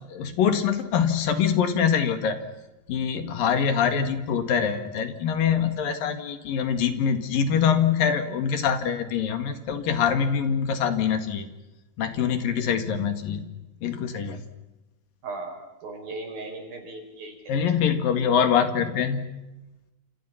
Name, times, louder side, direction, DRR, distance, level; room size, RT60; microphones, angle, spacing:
voice 1, 0.1-2.4 2.9-11.5 12.0-13.5 13.8-14.4 17.5-19.3, left 7 dB, 70° left, 9 dB, 3.6 m, -24 dB
voice 2, 15.2-17.5, right 3 dB, 75° right, 4 dB, 6.9 m, -37 dB
29.5 x 28.0 x 5.8 m, 1.0 s
omnidirectional pair, 4.2 m